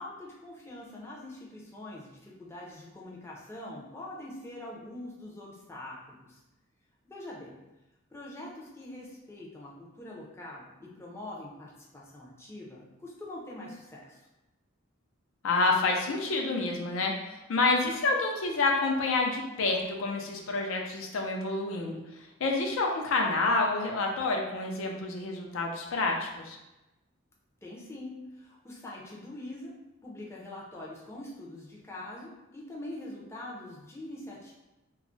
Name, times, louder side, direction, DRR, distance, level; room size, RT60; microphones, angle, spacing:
voice 1, 0.0-6.4 7.0-7.6 8.1-14.3 27.6-29.7 30.0-34.5, left 1 dB, 15° left, -4 dB, 0.5 m, -44 dB
voice 2, 15.4-22.0 22.4-26.6, left 3 dB, 70° left, 1 dB, 0.4 m, -28 dB
2.3 x 2.0 x 3.7 m, 0.99 s
head